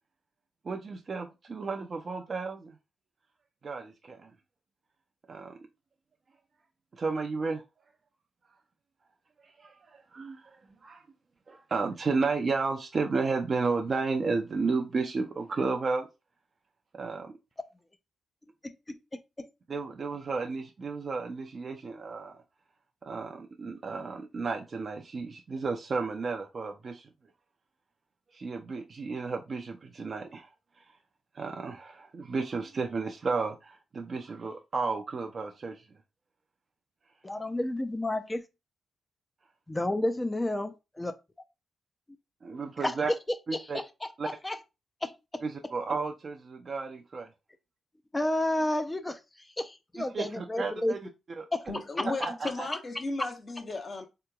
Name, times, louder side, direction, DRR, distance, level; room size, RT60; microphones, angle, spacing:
voice 1, 0.6-2.7 3.6-4.3 5.3-5.6 6.9-7.6 9.4-11.0 11.5-16.1 16.9-17.3 19.7-22.4 23.0-27.1 28.3-30.5 31.3-35.8 42.4-43.1 43.5-43.8 44.2-44.3 45.4-47.3 50.0-51.0 51.4-51.5 52.2-52.7, right 4 dB, 50° right, 0.4 m, -33 dB
voice 2, 18.6-19.5 37.2-38.4 39.7-40.7 41.0-41.1 42.8-42.9 43.5-44.6 45.0-45.4 48.1-49.2 49.6-50.9 51.5-51.6, left 1 dB, 20° left, 0.4 m, -31 dB
voice 3, 51.7-54.1, left 3 dB, 45° left, 0.8 m, -35 dB
3.6 x 2.9 x 2.3 m
supercardioid pair, 55°, 0 cm